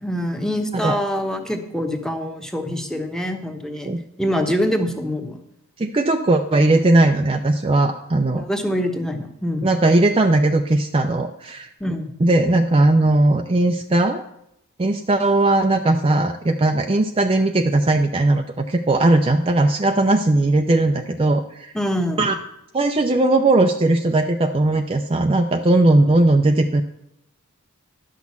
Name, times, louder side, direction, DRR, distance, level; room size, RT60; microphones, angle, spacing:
voice 1, 0.0-3.9 4.2-5.4 8.3-9.7 11.8-12.1 21.7-22.2, equal, 5° left, 4 dB, 1.1 m, -25 dB
voice 2, 5.8-8.4 9.6-11.7 12.2-14.2 14.8-21.7 22.2-22.3 22.7-26.8, right 2 dB, 25° right, 5 dB, 0.5 m, -18 dB
11.5 x 6.1 x 7.2 m, 0.79 s
head